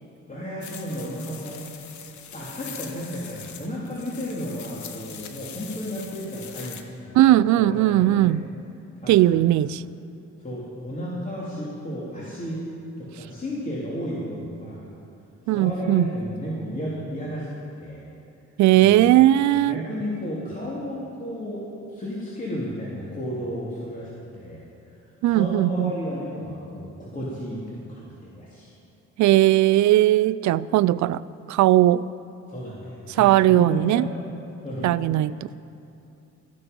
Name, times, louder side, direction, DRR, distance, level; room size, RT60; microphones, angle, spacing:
voice 1, 0.3-1.6 2.3-8.3 9.0-9.6 10.4-12.6 13.0-14.9 15.5-17.5 17.8-18.0 18.7-19.1 19.6-21.6 21.9-24.6 25.3-28.7 32.5-34.1 34.6-35.3, equal, 25° left, -7 dB, 3.2 m, -33 dB
sound 1, 0.6-6.8, left 8 dB, 70° left, 1.3 m, -42 dB
voice 2, 7.1-8.5 9.1-9.8 15.5-16.1 18.6-19.8 25.2-25.9 29.2-31.2 31.5-32.0 33.2-34.1 34.8-35.5, right 14 dB, 70° right, 18 dB, 0.5 m, -18 dB
17.5 x 14.0 x 5.4 m, 2.7 s
cardioid pair, 90°, 30 cm